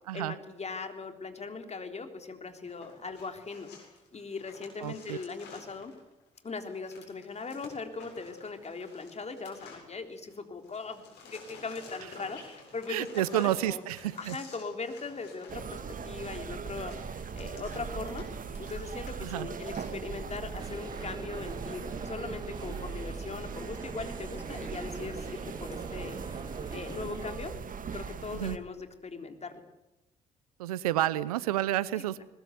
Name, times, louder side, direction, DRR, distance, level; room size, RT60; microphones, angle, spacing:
voice 1, 0.1-3.7 4.1-5.9 6.4-13.1 13.3-13.8 14.2-18.3 18.6-26.4 26.7-27.6 27.9-29.6 32.0-32.2, left 4 dB, 35° left, 6 dB, 3.6 m, -40 dB
sound 1, 2.6-10.4 10.6-19.9, left 4 dB, 65° left, 7.5 m, -52 dB
voice 2, 4.8-5.2 12.9-14.4 19.2-19.5 28.3-28.6 30.6-32.2, right 14 dB, 85° right, 19 dB, 0.8 m, -30 dB
sound 2, 15.5-28.6, right 6 dB, 45° right, 2.1 m, -39 dB
sound 3, 20.6-27.3, right 3 dB, 20° right, 1.5 m, -44 dB
21.5 x 20.5 x 8.1 m, 0.97 s
hypercardioid pair, 45°, 19 cm